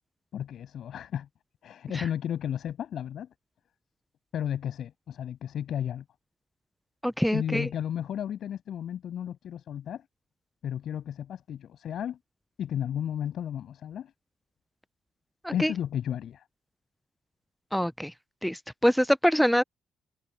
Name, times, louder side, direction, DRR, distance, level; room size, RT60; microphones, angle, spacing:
voice 1, 0.3-1.3 1.6-3.3 4.3-6.0 7.3-10.0 10.6-12.2 12.6-14.1 15.5-16.4, left 10 dB, 65° left, 6.8 m, -33 dB
voice 2, 7.0-7.7 15.4-15.7 17.7-18.1 18.4-19.6, equal, ahead, 0.5 m, -25 dB
cardioid pair, 90°, 0 cm